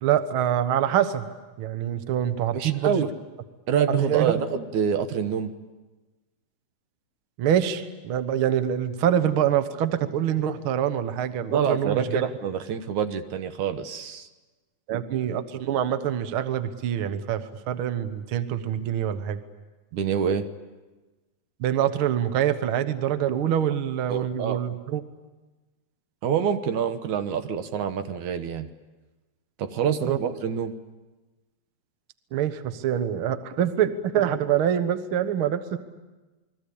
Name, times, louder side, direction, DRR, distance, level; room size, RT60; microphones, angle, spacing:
voice 1, 0.0-1.3 1.6-3.0 4.0-4.3 7.4-12.2 14.9-19.4 21.6-25.0 30.0-30.2 32.3-35.8, right 10 dB, 55° right, 10 dB, 1.7 m, -25 dB
voice 2, 2.5-3.1 3.7-5.5 11.5-14.3 19.9-20.5 24.1-24.6 26.2-28.7 29.6-30.7, right 7 dB, 75° right, 9 dB, 2.6 m, -26 dB
29.0 x 22.0 x 8.5 m, 1.2 s
omnidirectional pair, 3.5 m